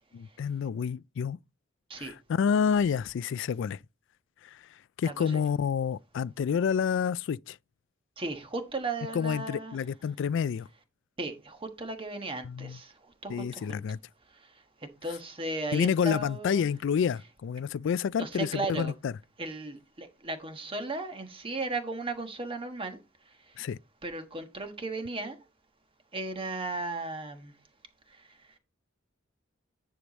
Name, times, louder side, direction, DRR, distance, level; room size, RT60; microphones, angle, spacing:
voice 1, 0.1-1.4 2.0-3.8 4.4-4.6 5.0-7.6 9.1-10.7 12.4-12.8 13.3-14.0 15.7-19.1 23.6-23.8, left 7 dB, 65° left, 0.3 m, -29 dB
voice 2, 5.0-5.4 8.2-9.8 11.2-13.8 14.3-16.6 18.2-18.9 19.4-23.0 23.2-23.6 24.0-25.4 26.1-27.5 28.1-28.6, right 2 dB, 25° right, 1.3 m, -36 dB
10.0 x 4.9 x 4.0 m
head